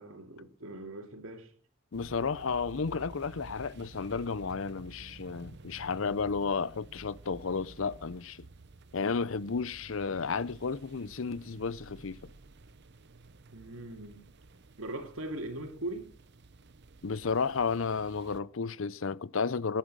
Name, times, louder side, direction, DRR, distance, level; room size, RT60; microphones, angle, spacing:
voice 1, 0.0-1.5 13.5-14.3 14.8-16.1, right 1 dB, 85° right, 2.7 m, -40 dB
voice 2, 1.9-8.5 8.9-12.3 17.0-19.8, left 5 dB, 70° left, 0.6 m, -32 dB
sound 1, 1.9-18.4, right 2 dB, 55° right, 0.8 m, -52 dB
18.5 x 10.5 x 6.3 m
head